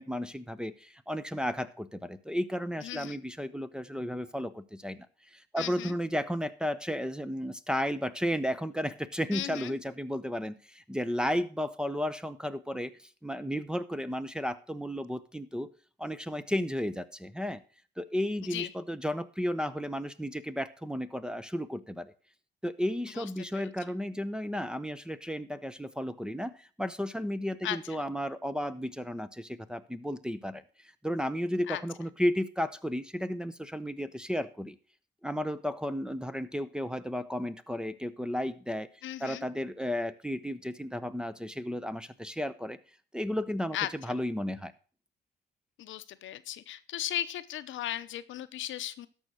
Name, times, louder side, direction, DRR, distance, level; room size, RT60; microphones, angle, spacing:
voice 1, 0.0-15.7 16.0-17.6 18.0-22.1 22.6-34.8 35.2-38.9 39.2-42.8 43.1-44.7, equal, 5° right, 13 dB, 0.7 m, -33 dB
voice 2, 2.8-3.2 5.6-5.9 9.3-9.7 18.5-18.7 23.1-23.3 23.5-23.7 27.6-27.8 31.7-31.8 39.0-39.4 43.7-43.9 45.8-49.1, left 12 dB, 75° left, 12 dB, 0.8 m, -36 dB
13.0 x 5.5 x 6.2 m, 0.39 s
cardioid pair, 90°, 20 cm